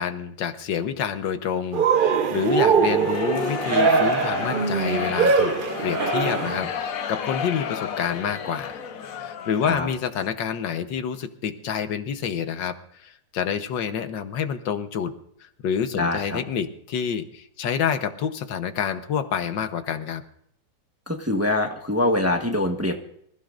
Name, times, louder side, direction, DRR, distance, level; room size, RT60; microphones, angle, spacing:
voice 1, 0.0-5.5 5.8-8.7 9.2-15.1 15.4-20.2, left 7 dB, 80° left, 9 dB, 1.7 m, -28 dB
Cheering, 1.7-6.7, right 5 dB, 55° right, 0.5 m, -22 dB
sound 1, 2.8-10.0, left 7 dB, 55° left, 1.1 m, -32 dB
voice 2, 15.9-16.4 21.1-23.0, left 1 dB, 10° right, 3 dB, 1.1 m, -24 dB
25.5 x 15.0 x 2.5 m, 0.69 s
omnidirectional pair, 2.0 m